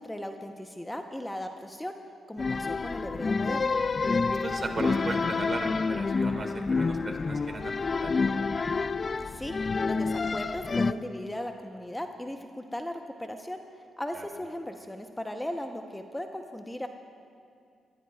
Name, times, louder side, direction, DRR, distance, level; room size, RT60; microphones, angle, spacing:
voice 1, 0.0-2.0 2.3-3.7 9.2-9.6 9.9-13.6 14.0-16.9, left 1 dB, 10° left, 5 dB, 0.9 m, -37 dB
sound 1, 2.4-10.9, left 4 dB, 45° left, 0.4 m, -28 dB
voice 2, 4.3-8.4 14.1-14.3, right 3 dB, 45° right, 4 dB, 2.0 m, -37 dB
21.5 x 14.5 x 2.4 m, 2.4 s
supercardioid pair, 50°, 0 cm